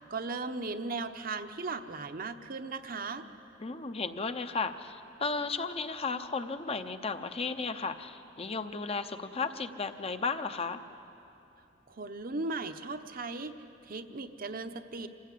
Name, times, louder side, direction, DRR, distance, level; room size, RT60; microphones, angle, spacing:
voice 1, 0.1-3.2 11.9-13.5 13.8-15.1, right 3 dB, 50° right, 7 dB, 0.9 m, -37 dB
voice 2, 3.6-10.8, left 4 dB, 35° left, 9 dB, 0.8 m, -34 dB
26.0 x 16.0 x 8.4 m, 2.9 s
head